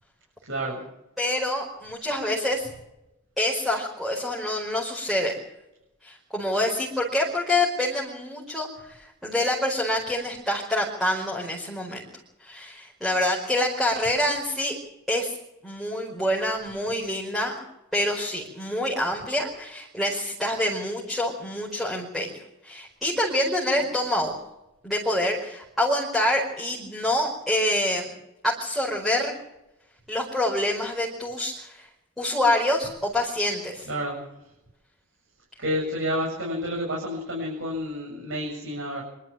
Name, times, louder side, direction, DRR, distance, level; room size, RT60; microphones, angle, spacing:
voice 1, 0.5-0.8 33.9-34.2 35.6-39.0, equal, 60° right, -2 dB, 7.6 m, -29 dB
voice 2, 1.2-2.7 3.4-5.4 6.0-12.0 12.4-14.8 15.1-15.4 15.6-17.6 17.9-24.4 24.8-28.1 28.4-29.3 30.1-31.9 32.2-33.9, left 1 dB, ahead, -3 dB, 4.8 m, -26 dB
25.5 x 13.0 x 8.7 m, 0.89 s
head